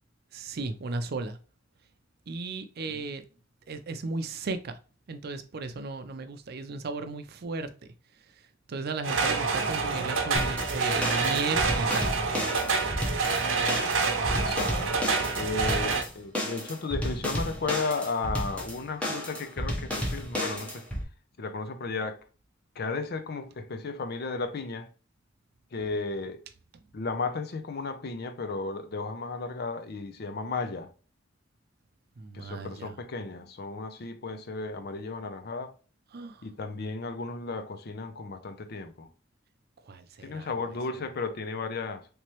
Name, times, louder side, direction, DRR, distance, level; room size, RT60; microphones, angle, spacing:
voice 1, 0.3-1.4 2.3-3.2 3.7-4.7 5.1-7.7 8.7-12.1 32.2-32.9 36.1-36.4 39.9-40.5, right 3 dB, 55° right, 0.5 m, -35 dB
sound 1, 9.0-16.0, right 4 dB, 90° right, 0.7 m, -27 dB
sound 2, 10.4-21.0, equal, 5° left, 0.8 m, -32 dB
voice 2, 14.3-14.9 15.3-20.8 21.4-22.2 22.8-24.9 25.7-26.4 26.9-30.9 32.3-35.7 36.4-39.1 40.2-42.1, left 3 dB, 55° left, 0.5 m, -34 dB
3.3 x 3.0 x 2.9 m
head